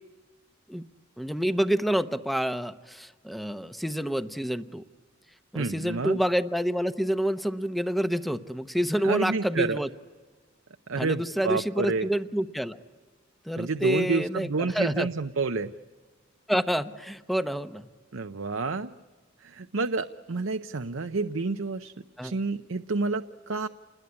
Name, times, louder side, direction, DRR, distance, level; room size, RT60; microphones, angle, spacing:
voice 1, 1.2-4.8 5.5-9.9 11.0-12.8 13.5-15.1 16.5-17.9 22.2-22.3, equal, ahead, 10 dB, 0.8 m, -28 dB
voice 2, 5.5-6.2 9.0-9.8 10.9-12.1 13.6-15.7 18.1-18.9 19.4-21.9 22.2-23.7, right 3 dB, 85° right, 8 dB, 0.7 m, -29 dB
29.0 x 21.0 x 9.7 m, 1.4 s
head